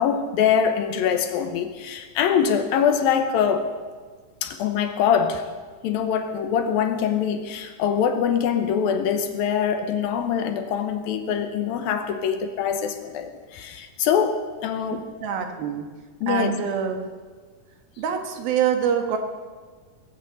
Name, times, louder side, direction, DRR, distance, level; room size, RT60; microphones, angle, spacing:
voice 1, 0.0-3.7 4.4-5.5 5.8-15.0 16.2-16.5, left 7 dB, 80° left, 7 dB, 2.8 m, -23 dB
voice 2, 14.9-15.9 16.3-17.0 18.0-19.2, right 8 dB, 90° right, 4 dB, 3.4 m, -25 dB
21.0 x 15.5 x 4.1 m, 1.5 s
omnidirectional pair, 4.2 m